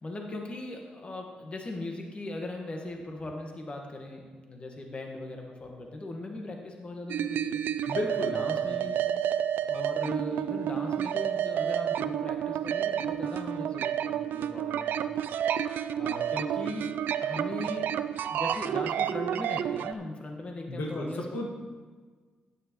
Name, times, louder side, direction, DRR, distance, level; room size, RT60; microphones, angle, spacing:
voice 1, 0.0-7.6 8.3-9.0 9.7-15.1 16.0-16.9 17.2-17.9 18.3-21.4, left 2 dB, 35° left, 1 dB, 1.4 m, -39 dB
sound 1, 7.1-19.9, right 10 dB, 80° right, 0.4 m, -30 dB
voice 2, 7.8-8.4 8.6-8.8 20.7-21.5, left 2 dB, 75° left, 0 dB, 1.7 m, -33 dB
13.0 x 9.6 x 3.1 m, 1.5 s
cardioid pair, 80°, 3 cm